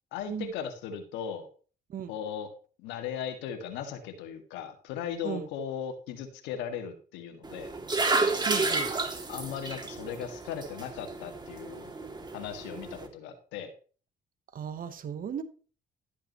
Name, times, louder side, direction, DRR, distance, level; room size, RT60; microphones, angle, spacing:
voice 1, 0.1-1.5 2.1-2.5 2.8-7.7 9.3-11.9 12.3-13.7, left 8 dB, 85° left, 2.0 m, -37 dB
sound 1, 7.4-13.1, right 3 dB, 25° right, 2.5 m, -31 dB
voice 2, 8.4-8.9 14.5-15.4, right 7 dB, 50° right, 1.2 m, -35 dB
13.0 x 8.7 x 3.1 m
supercardioid pair, 65°, 18 cm